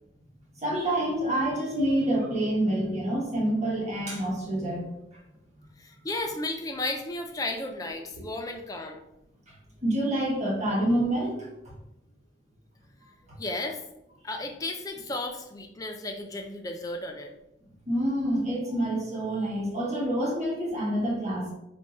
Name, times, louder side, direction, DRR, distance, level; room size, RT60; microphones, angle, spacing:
voice 1, 0.6-4.8 9.8-11.4 17.9-21.5, right 1 dB, 35° right, -4 dB, 1.3 m, -27 dB
voice 2, 5.8-9.0 13.4-13.8 14.2-17.3, left 2 dB, 20° left, 3 dB, 0.4 m, -34 dB
3.4 x 2.2 x 4.2 m, 0.82 s
head